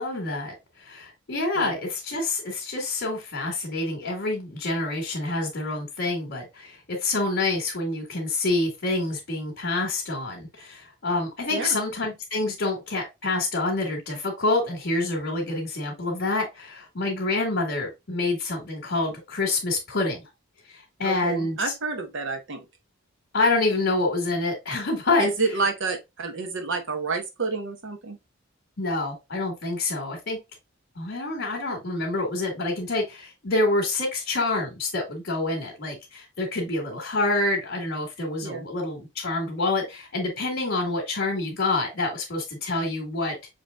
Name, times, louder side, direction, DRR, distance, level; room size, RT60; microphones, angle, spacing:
voice 1, 0.0-20.2 20.7-21.6 23.3-25.3 28.8-30.4 31.0-43.4, left 2 dB, 55° left, 1.9 m, -27 dB
voice 2, 21.0-22.6 25.2-28.2 38.4-38.7, right 3 dB, 65° right, 1.2 m, -29 dB
6.5 x 3.2 x 2.4 m
head